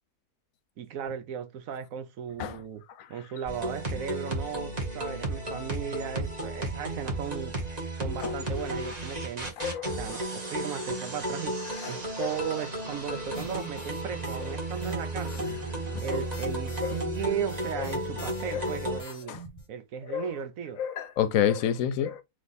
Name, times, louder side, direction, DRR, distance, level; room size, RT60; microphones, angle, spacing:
voice 1, 0.8-2.8 3.1-7.6 7.9-9.5 10.0-11.6 11.9-15.6 16.0-19.4 19.7-20.8, right 8 dB, 70° right, 1.0 m, -36 dB
sound 1, 3.5-19.0, right 1 dB, 30° right, 1.3 m, -34 dB
voice 2, 9.6-10.0 11.8-12.3 15.2-15.4 15.9-16.2 16.8-17.0 17.8-17.9 18.5-18.7 19.3-19.4 20.1-20.3 20.8-22.2, left 9 dB, 70° left, 1.0 m, -29 dB
sound 2, 13.3-14.4 14.7-19.6, right 1 dB, 25° left, 1.1 m, -44 dB
3.4 x 3.1 x 4.0 m
omnidirectional pair, 1.5 m